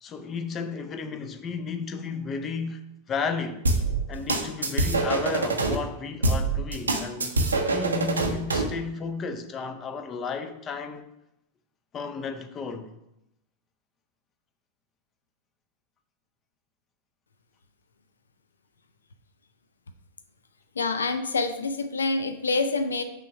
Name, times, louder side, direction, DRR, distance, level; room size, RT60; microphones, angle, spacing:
voice 1, 0.0-3.6 4.1-7.3 7.7-11.0 11.9-12.9, left 5 dB, 25° left, 0.6 m, -33 dB
sound 1, 3.7-5.8 6.2-8.7, right 3 dB, 75° right, 0.7 m, -25 dB
voice 2, 20.7-23.0, left 3 dB, 70° left, 0.5 m, -26 dB
5.9 x 3.5 x 5.7 m
figure-of-eight pair, 90°, 0 cm